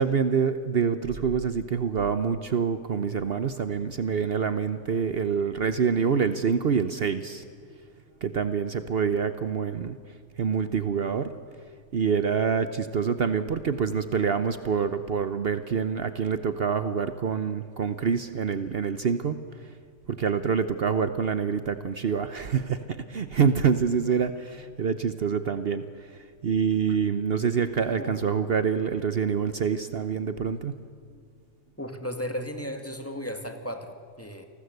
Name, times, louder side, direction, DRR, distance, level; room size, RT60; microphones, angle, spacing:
voice 1, 0.0-7.4 8.2-10.0 10.4-11.4 11.9-19.7 20.1-30.8, right 6 dB, 55° right, 11 dB, 1.0 m, -26 dB
voice 2, 31.8-34.5, equal, 10° left, 5 dB, 2.0 m, -35 dB
28.5 x 20.0 x 8.0 m, 2.3 s
omnidirectional pair, 1.3 m